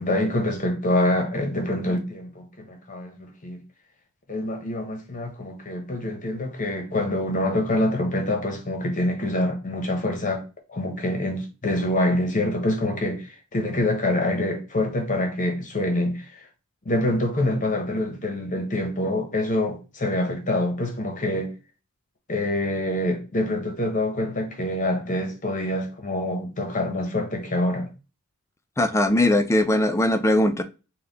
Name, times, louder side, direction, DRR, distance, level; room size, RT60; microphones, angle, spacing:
voice 1, 0.0-3.6 4.3-10.4 10.7-16.4 16.9-21.5 22.3-27.9, left 1 dB, 35° left, 0.8 m, -26 dB
voice 2, 28.8-30.6, left 1 dB, 15° left, 0.4 m, -20 dB
4.1 x 2.2 x 3.9 m
head